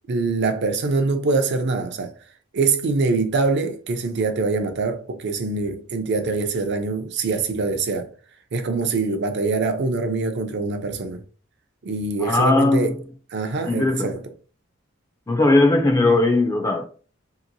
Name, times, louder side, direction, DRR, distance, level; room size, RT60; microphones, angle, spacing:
voice 1, 0.1-2.1 2.5-8.1 8.5-11.2 11.8-13.0 13.3-14.2, right 3 dB, 55° right, 0.5 m, -24 dB
voice 2, 12.2-13.0 13.7-14.1 15.3-16.9, left 2 dB, 15° left, 0.4 m, -18 dB
2.9 x 2.9 x 2.5 m
head